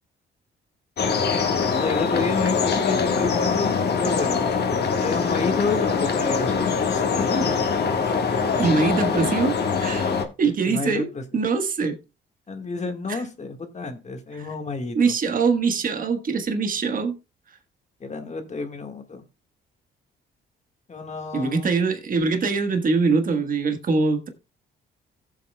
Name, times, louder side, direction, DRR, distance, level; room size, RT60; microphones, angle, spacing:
sound 1, 1.0-10.2, left 5 dB, 55° left, 1.5 m, -23 dB
voice 1, 1.8-4.4 5.0-7.7 10.4-11.4 12.5-15.1 18.0-19.2 20.9-21.7, left 4 dB, 35° left, 1.6 m, -30 dB
voice 2, 8.6-10.1 10.4-11.1 11.3-12.0 13.1-13.2 14.9-17.2 21.3-24.3, right 4 dB, 45° right, 1.3 m, -23 dB
16.5 x 7.4 x 2.2 m
cardioid pair, 90°, 20 cm